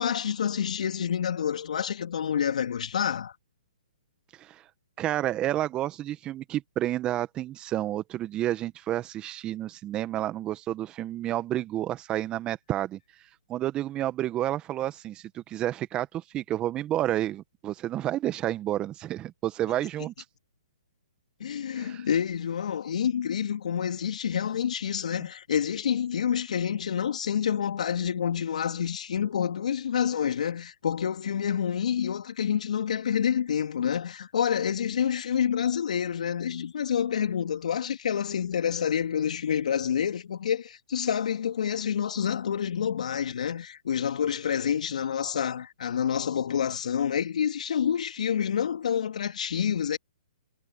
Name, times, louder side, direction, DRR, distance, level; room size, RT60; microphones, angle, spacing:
voice 1, 0.0-3.3 21.4-50.0, left 8 dB, 65° left, 3.3 m, -28 dB
voice 2, 5.0-13.0 13.5-20.1 21.7-22.0, right 13 dB, 20° right, 1.6 m, -30 dB
hypercardioid pair, 130°, 4 cm